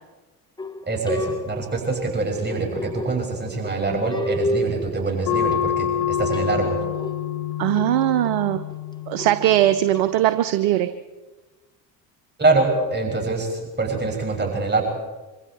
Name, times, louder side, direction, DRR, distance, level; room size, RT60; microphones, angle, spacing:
sound 1, 0.6-10.4, left 1 dB, 10° left, 1.7 m, -32 dB
voice 1, 0.9-6.8 12.4-14.8, right 3 dB, 20° right, 2 dB, 6.2 m, -24 dB
sound 2, 5.3-10.4, left 9 dB, 65° left, 3.3 m, -27 dB
voice 2, 7.6-8.6 9.1-10.9, right 13 dB, 55° right, 11 dB, 1.1 m, -20 dB
25.5 x 25.5 x 4.5 m, 1.2 s
figure-of-eight pair, 55°, 49 cm